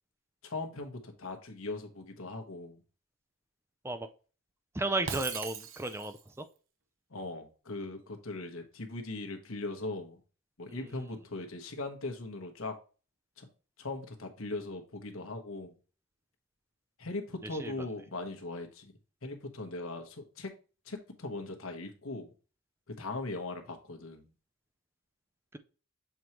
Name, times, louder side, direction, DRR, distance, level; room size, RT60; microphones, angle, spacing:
voice 1, 0.4-2.8 7.1-10.2 10.6-12.7 13.4-13.5 13.8-15.8 17.0-18.9 19.2-20.5 20.8-22.3 23.0-24.3, left 2 dB, 75° left, 4 dB, 1.1 m, -39 dB
voice 2, 4.7-6.4 10.7-10.9 17.6-17.7, right 2 dB, 10° right, 10 dB, 0.4 m, -34 dB
Shatter, 5.1-6.3, right 7 dB, 70° right, 0.8 m, -39 dB
7.1 x 4.6 x 3.0 m, 0.36 s
head